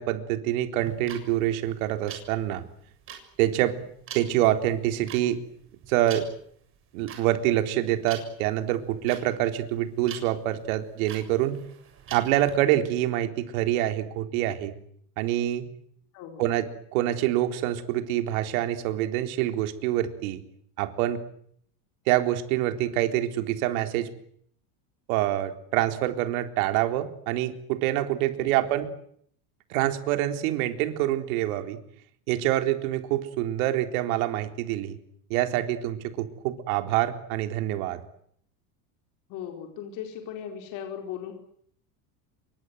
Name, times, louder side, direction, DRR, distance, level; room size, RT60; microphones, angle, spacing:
voice 1, 0.0-2.6 3.4-3.8 4.1-5.4 5.9-6.3 6.9-11.6 12.1-14.7 15.2-15.7 16.4-20.4 20.8-21.2 22.1-24.1 25.1-28.9 29.7-31.8 32.3-35.0 35.3-38.0, right 13 dB, 70° right, 7 dB, 3.9 m, -26 dB
sound 1, 0.8-12.5, right 8 dB, 30° right, 7.2 m, -44 dB
voice 2, 39.3-41.3, left 9 dB, 45° left, 3 dB, 4.6 m, -37 dB
28.5 x 24.0 x 8.0 m, 0.66 s
cardioid pair, 175°, 44 cm